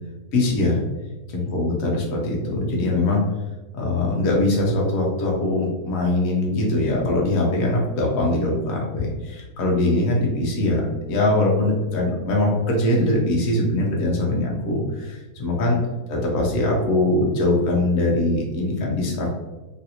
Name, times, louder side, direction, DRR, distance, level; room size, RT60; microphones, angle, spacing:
voice 1, 0.3-0.8 1.3-3.2 3.7-15.8 16.1-19.3, left 2 dB, 65° left, -2 dB, 1.1 m, -22 dB
3.2 x 2.5 x 2.8 m, 1.2 s
omnidirectional pair, 1.7 m